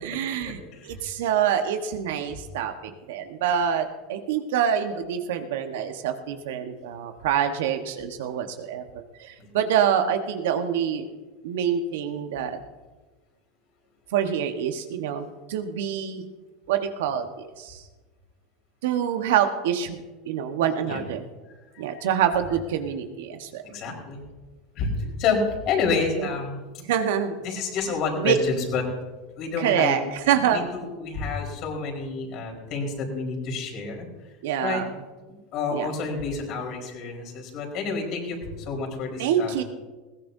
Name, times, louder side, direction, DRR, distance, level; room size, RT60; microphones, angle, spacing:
voice 1, 0.0-0.6 0.8-11.1 11.4-12.6 14.1-16.2 16.7-17.8 18.8-21.2 21.8-23.6 26.1-26.3 26.8-27.4 28.2-28.4 29.6-30.6 34.4-34.9 35.7-35.9 39.2-39.6, right 9 dB, 75° right, 7 dB, 1.3 m, -26 dB
voice 2, 23.6-24.2 24.7-24.9 25.2-26.6 27.4-28.8 29.4-30.0 30.3-34.1 34.6-34.8 35.5-39.6, left 4 dB, 55° left, 1 dB, 4.5 m, -29 dB
20.5 x 16.5 x 2.7 m, 1.3 s
hypercardioid pair, 100°, 0 cm